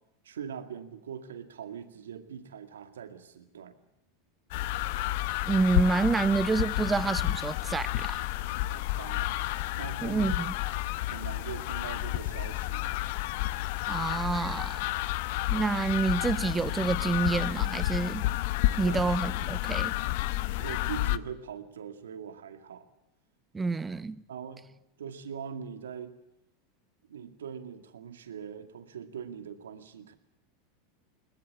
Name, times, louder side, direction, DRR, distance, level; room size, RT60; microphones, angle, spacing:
voice 1, 0.2-3.8 8.7-9.3 9.7-10.5 11.1-12.9 18.7-19.5 20.6-22.8 24.3-24.7 25.0-26.2 27.1-30.1, right 7 dB, 80° right, 2.2 m, -42 dB
sound 1, 3.9-4.2 4.5-7.3 7.8-8.4 8.7-10.4, left 2 dB, 15° left, 5.9 m, -57 dB
sound 2, 4.5-21.2, left 16 dB, 60° left, 0.8 m, -31 dB
voice 2, 5.4-8.2 10.0-10.5 13.9-14.8 15.5-18.3 18.8-19.9 23.5-24.2, right 4 dB, 15° right, 0.9 m, -28 dB
22.5 x 19.5 x 8.1 m
hypercardioid pair, 95°, 0 cm